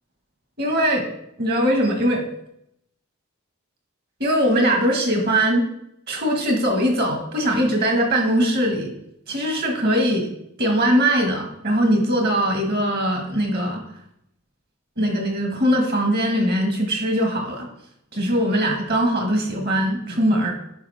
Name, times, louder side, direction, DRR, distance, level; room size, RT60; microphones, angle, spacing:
voice 1, 0.6-1.1 1.4-2.2 4.2-5.7 6.1-8.9 9.3-10.3 10.6-13.8 15.0-17.7 18.1-20.5, equal, 50° right, 3 dB, 1.6 m, -21 dB
10.0 x 4.9 x 3.5 m, 0.77 s
head